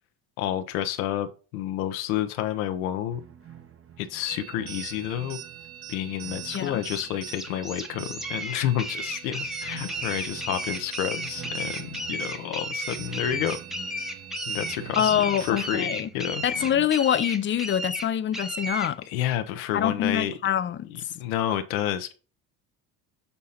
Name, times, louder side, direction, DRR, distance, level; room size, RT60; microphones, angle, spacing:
voice 1, 0.4-3.2 4.0-5.4 5.9-13.6 14.5-15.2 15.4-16.7 19.1-20.3 20.8-22.1, left 11 dB, 85° left, 0.8 m, -30 dB
sound 1, 3.1-16.9, right 8 dB, 30° right, 0.9 m, -46 dB
sound 2, 4.3-15.9, right 11 dB, 65° right, 1.3 m, -42 dB
sound 3, 6.5-18.9, equal, ahead, 0.9 m, -34 dB
voice 2, 15.0-16.1 16.4-19.0 19.7-20.9, left 9 dB, 30° left, 0.5 m, -25 dB
6.9 x 2.8 x 5.5 m
supercardioid pair, 80°, 42 cm